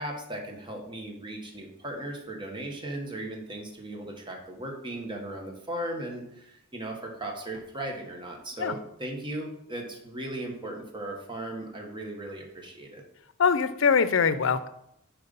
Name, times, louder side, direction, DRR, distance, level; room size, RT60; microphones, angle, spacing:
voice 1, 0.0-13.0, right 1 dB, 25° right, 2 dB, 1.4 m, -37 dB
voice 2, 13.4-14.7, left 6 dB, 70° left, 13 dB, 0.6 m, -23 dB
8.0 x 4.4 x 5.3 m, 0.78 s
head